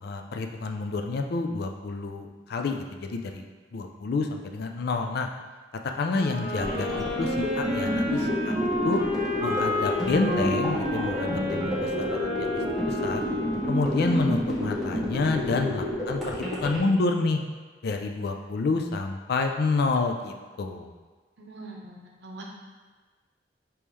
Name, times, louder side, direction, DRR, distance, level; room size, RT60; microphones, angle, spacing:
voice 1, 0.0-3.4 3.7-5.3 5.8-8.5 8.8-9.0 9.4-12.6 12.9-13.2 13.7-17.4 17.8-20.9, left 3 dB, 60° left, 4 dB, 0.4 m, -28 dB
Wind instrument woodwind instrument, 6.1-14.5, left 1 dB, 20° right, 1.2 m, -31 dB
sound 1, 6.6-16.8, left 1 dB, ahead, 1.2 m, -29 dB
voice 2, 21.4-22.4, right 2 dB, 70° right, 0 dB, 0.8 m, -43 dB
5.3 x 3.0 x 3.2 m, 1.4 s
head